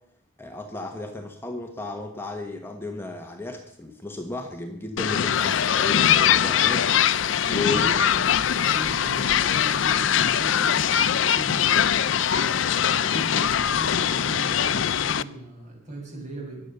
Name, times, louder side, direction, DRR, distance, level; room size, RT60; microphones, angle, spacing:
voice 1, 0.4-7.1 7.4-7.8, left 2 dB, 10° left, 3 dB, 1.2 m, -34 dB
sound 1, 5.0-15.2, left 9 dB, 70° left, 0.5 m, -22 dB
voice 2, 7.7-8.2 8.7-11.7 12.5-16.6, right 2 dB, 40° right, 0 dB, 6.1 m, -38 dB
22.0 x 8.5 x 6.8 m, 0.76 s
head